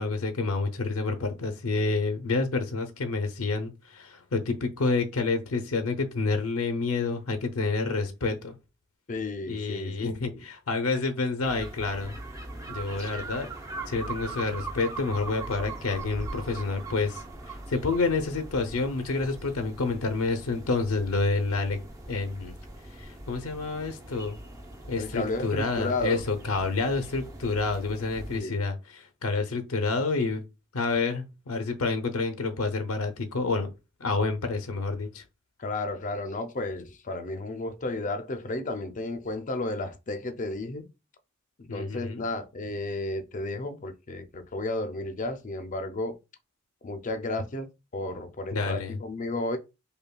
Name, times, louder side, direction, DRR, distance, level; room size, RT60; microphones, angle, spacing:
voice 1, 0.0-8.6 9.5-12.2 12.7-13.5 13.9-21.8 22.1-22.5 22.9-24.4 24.9-30.4 30.7-33.7 34.0-35.2 41.7-42.3 48.5-49.0, left 3 dB, 85° left, 0.6 m, -28 dB
voice 2, 9.1-10.4 25.0-26.2 28.3-28.6 35.6-40.9 41.6-46.2 46.8-49.6, left 2 dB, 35° left, 0.5 m, -33 dB
sound 1, 11.4-28.4, right 2 dB, 15° right, 0.6 m, -41 dB
5.3 x 2.2 x 2.2 m
head